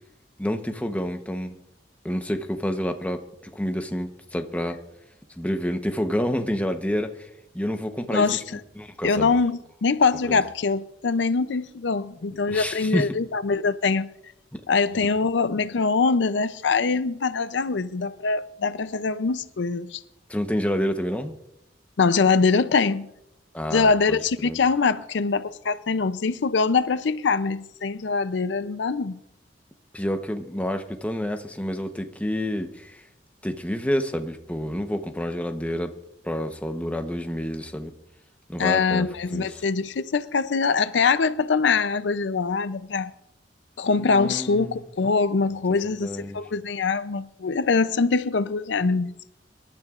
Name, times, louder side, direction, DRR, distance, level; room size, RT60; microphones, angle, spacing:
voice 1, 0.4-1.5 2.0-3.2 3.5-4.8 5.4-7.3 7.5-8.2 8.8-9.3 10.3-10.4 12.5-13.1 14.5-14.6 15.0-15.1 20.3-21.4 23.5-24.2 24.4-24.6 29.9-33.0 33.4-36.0 36.2-37.9 38.5-39.6 43.9-44.8 46.0-46.4, equal, 10° left, 0.9 m, -28 dB
voice 2, 8.1-8.4 9.0-14.1 14.7-20.0 22.0-23.1 23.7-29.2 38.6-43.1 43.8-49.2, left 4 dB, 80° left, 0.5 m, -23 dB
26.0 x 12.5 x 2.5 m
head